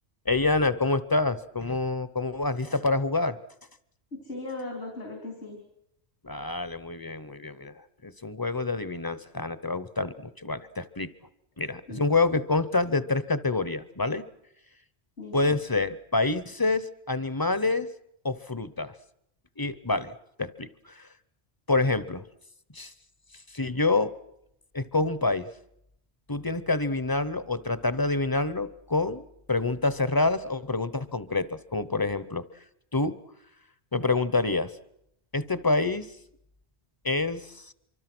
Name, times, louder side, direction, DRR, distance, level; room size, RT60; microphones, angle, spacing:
voice 1, 0.3-3.4 6.2-7.7 8.0-11.1 11.6-14.3 15.3-17.9 18.2-18.9 19.6-21.1 21.7-22.2 22.7-22.9 23.5-24.1 24.7-25.5 26.3-32.4 32.9-33.1 33.9-34.7 35.3-36.1 37.0-37.7, left 3 dB, 20° left, 15 dB, 0.8 m, -27 dB
voice 2, 4.1-5.6 11.9-12.0 15.2-15.6, left 2 dB, 85° left, 2 dB, 4.0 m, -38 dB
25.0 x 24.5 x 6.2 m, 0.76 s
omnidirectional pair, 1.1 m